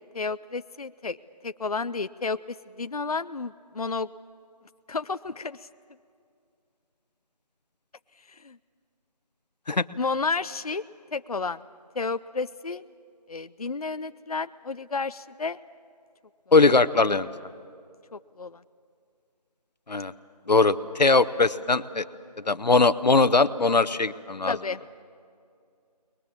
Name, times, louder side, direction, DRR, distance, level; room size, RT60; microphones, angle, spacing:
voice 1, 0.1-1.2 1.4-4.1 4.9-5.7 8.3-8.6 10.0-10.8 11.1-11.6 12.0-12.8 13.3-15.6 18.1-18.6 24.5-24.8, left 4 dB, 60° left, 12 dB, 0.5 m, -31 dB
voice 2, 16.5-17.3 19.9-20.1 20.5-22.0 22.5-24.6, left 3 dB, 75° left, 13 dB, 0.9 m, -20 dB
28.5 x 21.0 x 7.6 m, 2.3 s
figure-of-eight pair, 180°, 21 cm